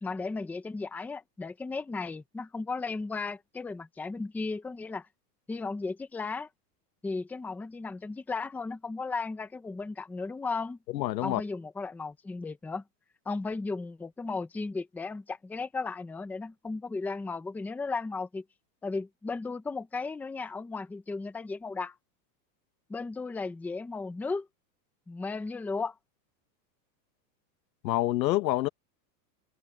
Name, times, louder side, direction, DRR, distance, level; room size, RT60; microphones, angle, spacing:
voice 1, 0.0-5.1 5.5-6.5 7.0-10.8 11.2-12.8 13.3-18.4 18.8-22.0 22.9-24.5 25.1-25.9, left 4 dB, 5° left, 0.7 m, -35 dB
voice 2, 10.9-11.4 27.8-28.7, left 16 dB, 85° left, 1.4 m, -27 dB
supercardioid pair, 160°, 50 cm